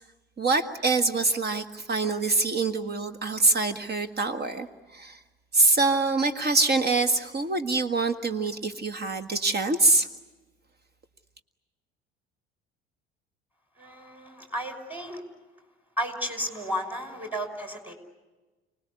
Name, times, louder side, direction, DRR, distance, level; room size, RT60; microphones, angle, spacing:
voice 1, 0.4-5.2 5.5-10.1, right 3 dB, 35° right, 10 dB, 1.6 m, -25 dB
voice 2, 13.8-15.2 16.0-17.9, equal, 5° right, 5 dB, 6.1 m, -33 dB
30.0 x 19.5 x 9.8 m, 1.2 s
figure-of-eight pair, 60°, 29 cm